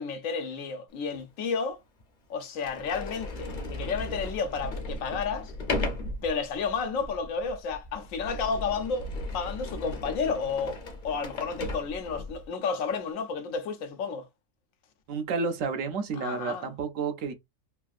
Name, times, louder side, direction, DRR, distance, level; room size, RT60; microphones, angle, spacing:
voice 1, 0.0-1.8 2.3-5.5 6.2-9.1 9.3-10.8 11.0-14.3 16.2-16.7, left 5 dB, 85° left, 1.1 m, -31 dB
Sliding door, 1.2-1.3 2.0-2.1 2.5-12.5, left 2 dB, 45° left, 0.7 m, -36 dB
voice 2, 15.1-17.3, right 5 dB, 80° right, 1.0 m, -30 dB
3.3 x 2.4 x 2.4 m
omnidirectional pair, 1.4 m